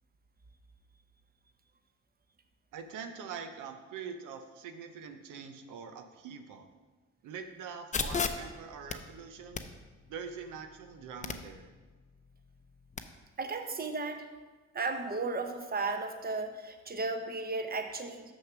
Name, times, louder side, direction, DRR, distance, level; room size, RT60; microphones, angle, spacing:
voice 1, 2.7-6.7 7.2-9.6 10.1-11.7, right 6 dB, 85° right, 7 dB, 0.7 m, -44 dB
sound 1, 7.9-13.0, left 5 dB, 25° left, 0.6 m, -39 dB
voice 2, 13.4-14.2 14.7-18.2, right 3 dB, 30° right, 6 dB, 1.0 m, -34 dB
6.3 x 6.3 x 5.9 m, 1.3 s
cardioid pair, 90°, 30 cm